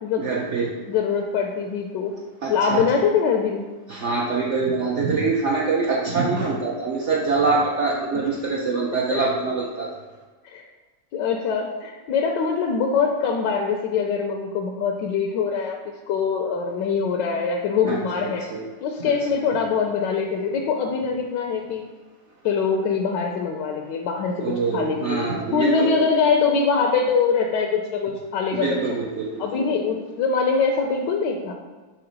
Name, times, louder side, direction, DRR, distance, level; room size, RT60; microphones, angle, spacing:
voice 1, 0.2-0.7 2.4-2.8 3.9-9.9 17.8-18.6 24.4-26.0 28.5-29.6, right 4 dB, 65° right, -4 dB, 0.7 m, -24 dB
voice 2, 0.9-2.1 2.5-3.7 9.1-9.2 10.4-10.6 11.1-15.8 16.1-18.4 18.8-21.8 22.4-24.3 24.7-28.8 29.4-31.5, left 5 dB, 75° left, 1 dB, 1.2 m, -23 dB
5.8 x 3.1 x 5.3 m, 1.3 s
omnidirectional pair, 2.0 m